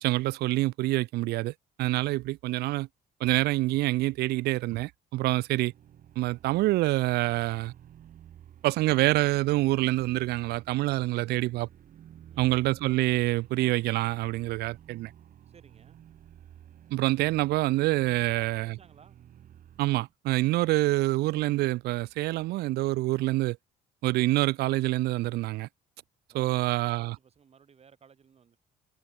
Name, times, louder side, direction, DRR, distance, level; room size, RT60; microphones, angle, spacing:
voice 1, 0.0-2.9 3.2-5.7 6.2-7.7 8.6-11.7 12.4-15.1 16.9-18.7 19.8-23.6 24.0-25.7 26.3-27.1, right 18 dB, 75° right, 0.4 m, -26 dB
sound 1, 5.4-20.1, right 10 dB, 55° right, 3.5 m, -53 dB
voice 2, 12.3-13.0 15.5-16.0 18.3-19.2 26.3-28.6, right 6 dB, 40° right, 7.0 m, -57 dB
cardioid pair, 110°, 17 cm